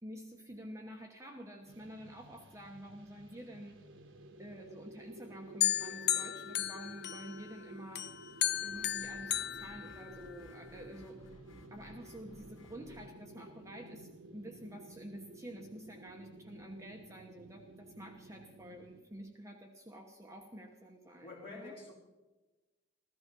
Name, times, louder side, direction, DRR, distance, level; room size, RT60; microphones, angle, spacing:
voice 1, 0.0-3.8 4.4-8.1 8.6-11.2 11.7-21.7, equal, 15° right, 2 dB, 1.1 m, -49 dB
sound 1, 1.7-19.0, right 2 dB, 70° right, 1.1 m, -54 dB
sound 2, 5.6-7.5 8.0-10.5, left 11 dB, 55° left, 0.5 m, -34 dB
sound 3, 8.7-13.1, equal, 85° left, 2.1 m, -57 dB
voice 2, 21.2-21.9, left 3 dB, 30° left, -5 dB, 4.9 m, -47 dB
16.0 x 13.5 x 5.4 m, 1.2 s
head